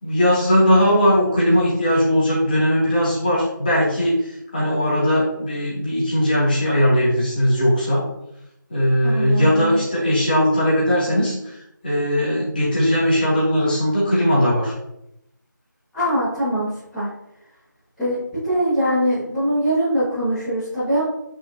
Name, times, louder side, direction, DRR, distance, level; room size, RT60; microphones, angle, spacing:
voice 1, 0.0-8.1 8.7-14.7, equal, 25° left, -8 dB, 2.9 m, -19 dB
voice 2, 9.0-9.8 15.9-17.1 18.0-21.0, equal, 5° left, -19 dB, 2.0 m, -22 dB
8.5 x 6.1 x 3.0 m, 0.82 s
figure-of-eight pair, 170°, 11 cm